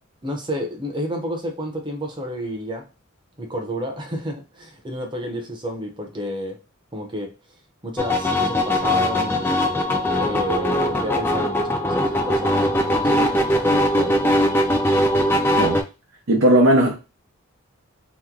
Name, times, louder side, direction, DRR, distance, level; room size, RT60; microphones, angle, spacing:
voice 1, 0.2-2.8 3.4-6.6 6.9-7.3 7.8-9.5 10.2-14.2, equal, 25° right, 0.7 m, -30 dB
sound 1, 8.0-15.8, left 1 dB, 10° left, 0.4 m, -20 dB
voice 2, 16.3-16.9, right 1 dB, 85° right, 0.8 m, -16 dB
2.9 x 2.1 x 3.6 m
head